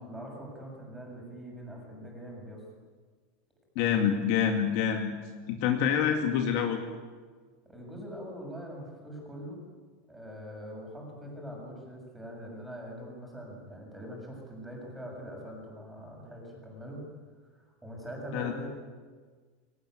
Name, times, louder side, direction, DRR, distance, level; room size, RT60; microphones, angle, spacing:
voice 1, 0.0-2.6 7.7-9.6 10.1-17.0 17.5-18.7, equal, 5° right, -1 dB, 7.2 m, -43 dB
voice 2, 3.8-5.1 5.5-6.8 18.3-18.5, left 8 dB, 50° left, 5 dB, 2.3 m, -26 dB
22.0 x 19.0 x 9.6 m, 1.5 s
supercardioid pair, 165°, 0 cm